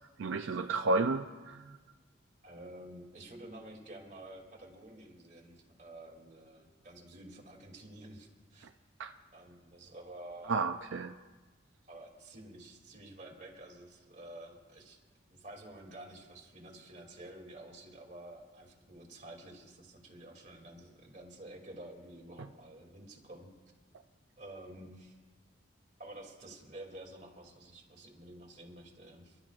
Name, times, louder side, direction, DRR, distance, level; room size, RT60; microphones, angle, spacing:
voice 1, 0.2-1.6 9.0-9.1 10.5-11.1, right 3 dB, 80° right, 7 dB, 0.5 m, -31 dB
voice 2, 2.4-8.7 9.3-10.6 11.9-15.0 15.3-23.5 24.4-25.2 26.0-29.4, right 1 dB, 40° right, 1 dB, 2.6 m, -50 dB
30.0 x 12.5 x 2.4 m, 1.3 s
head